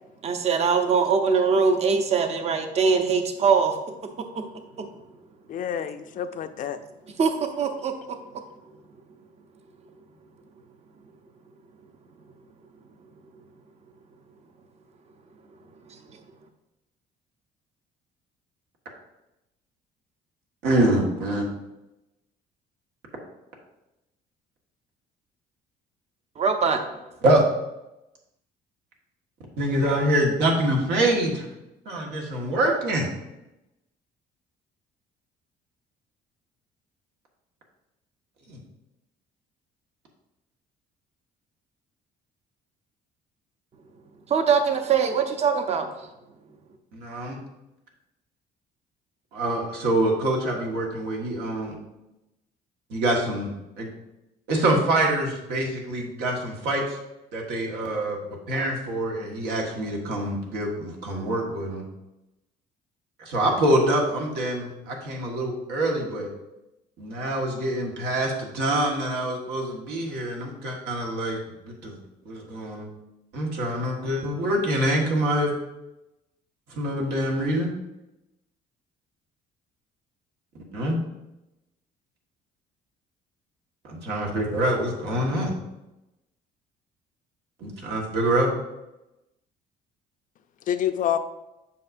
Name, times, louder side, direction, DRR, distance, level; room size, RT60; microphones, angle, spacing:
voice 1, 0.2-3.8 4.2-4.5 4.8-4.9 7.2-8.2 15.9-16.0 26.4-26.8 44.3-45.9, right 5 dB, 40° right, 6 dB, 0.8 m, -22 dB
voice 2, 5.5-6.8 90.7-91.2, left 10 dB, 50° left, 10 dB, 0.5 m, -27 dB
voice 3, 20.6-21.5 27.2-27.5 29.6-31.4 31.8-33.1 38.5-38.6 46.9-47.4 49.3-51.7 52.9-53.5 53.8-53.9 54.5-57.0 57.3-58.2 58.5-61.8 63.2-66.3 67.0-72.0 72.2-72.9 73.3-75.5 76.7-77.7 80.7-81.0 83.8-85.5 87.6-88.5, right 1 dB, 80° right, -1 dB, 1.6 m, -25 dB
7.5 x 5.6 x 2.6 m, 0.95 s
cardioid pair, 110°, 17 cm